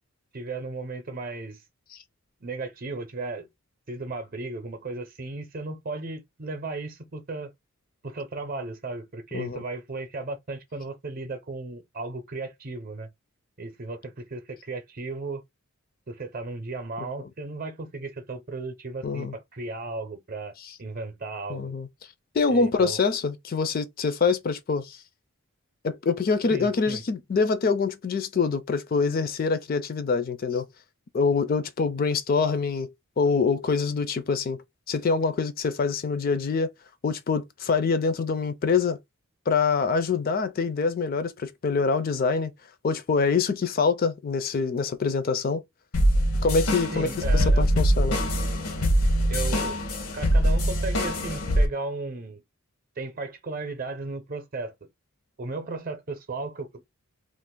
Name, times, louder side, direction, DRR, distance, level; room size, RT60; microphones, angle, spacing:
voice 1, 0.3-1.6 2.4-3.5 3.9-7.5 8.0-13.1 13.6-15.4 16.1-20.5 20.8-21.7 22.5-23.0 26.5-27.0 46.9-47.7 49.3-49.8 50.1-52.4 53.0-54.7 55.4-56.8, right 3 dB, 40° right, 0.6 m, -35 dB
voice 2, 19.0-19.3 21.5-21.9 22.3-25.0 25.8-30.7 31.1-32.9 33.2-34.6 34.9-36.7 37.0-39.0 39.5-42.5 42.8-45.6 46.4-48.2, left 4 dB, 40° left, 0.4 m, -25 dB
sound 1, 45.9-51.7, equal, 85° left, 0.9 m, -23 dB
2.5 x 2.4 x 3.6 m
head